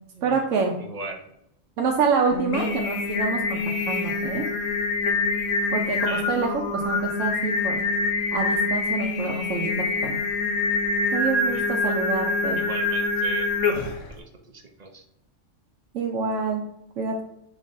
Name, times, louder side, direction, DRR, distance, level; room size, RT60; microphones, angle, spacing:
voice 1, 0.2-0.7 1.8-4.4 5.7-7.8 8.3-10.2 11.1-12.6 15.9-16.6 17.0-17.2, right 5 dB, 80° right, 0 dB, 1.0 m, -27 dB
voice 2, 0.8-1.2 6.0-6.2 11.5-11.9 12.6-13.5 14.1-14.2 14.5-15.0, right 3 dB, 45° right, 2 dB, 0.5 m, -37 dB
Singing, 2.3-14.1, left 3 dB, 80° left, 1.0 m, -25 dB
5.2 x 4.0 x 2.5 m, 0.81 s
omnidirectional pair, 1.3 m